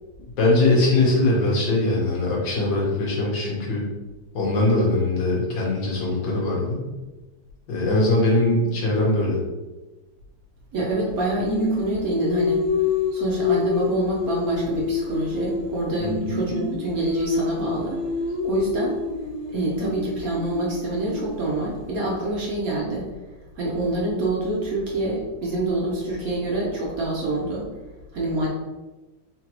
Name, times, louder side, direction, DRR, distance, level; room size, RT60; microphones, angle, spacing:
voice 1, 0.4-3.8 4.3-6.8 7.7-9.4 16.0-16.3, left 2 dB, 75° left, -3 dB, 1.8 m, -21 dB
voice 2, 10.7-12.6 13.1-18.0 18.4-19.0 19.5-23.1 23.6-27.7 28.1-28.5, right 1 dB, 60° right, -4 dB, 1.1 m, -26 dB
Singing, 11.5-15.8 16.1-22.1, left 4 dB, 30° right, 1.1 m, -27 dB
3.9 x 3.6 x 2.9 m, 1.1 s
omnidirectional pair, 2.0 m